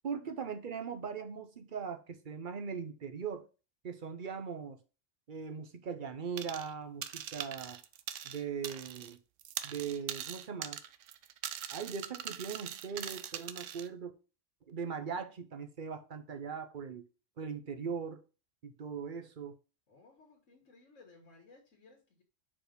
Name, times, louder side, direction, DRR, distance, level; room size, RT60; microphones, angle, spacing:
voice 1, 0.0-3.5 3.8-4.8 5.3-7.8 8.2-9.2 9.6-10.8 11.7-14.1 14.7-17.1 17.4-18.2 18.6-19.6, right 6 dB, 45° right, 0.8 m, -40 dB
sound 1, 6.4-6.7 7.0-9.1 9.4-13.9, right 10 dB, 80° right, 0.9 m, -42 dB
voice 2, 19.9-22.2, left 3 dB, 80° left, 1.7 m, -60 dB
5.0 x 4.6 x 5.1 m
omnidirectional pair, 1.3 m